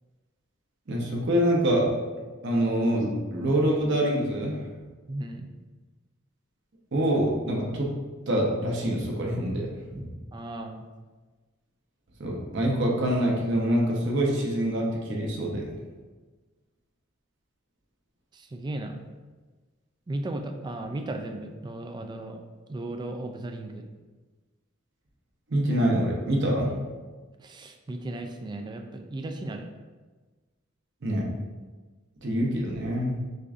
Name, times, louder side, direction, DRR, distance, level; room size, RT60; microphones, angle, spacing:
voice 1, 0.9-1.9 2.4-4.6 6.9-7.9 8.3-10.1 12.2-15.7 25.5-26.7 31.0-31.2 32.2-33.1, right 1 dB, 60° right, -1 dB, 0.8 m, -25 dB
voice 2, 5.1-5.5 10.3-10.9 18.3-19.0 20.1-22.4 22.7-23.8 27.4-29.7, right 1 dB, 20° right, 5 dB, 0.3 m, -35 dB
6.4 x 2.6 x 2.4 m, 1.3 s
head